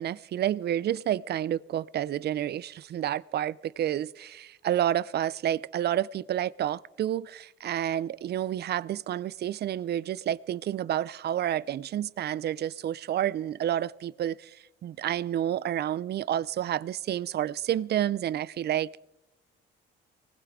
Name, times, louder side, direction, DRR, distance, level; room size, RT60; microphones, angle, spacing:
voice 1, 0.0-19.0, right 11 dB, 55° right, 0.5 m, -30 dB
19.5 x 19.5 x 3.6 m
cardioid pair, 90°, 20 cm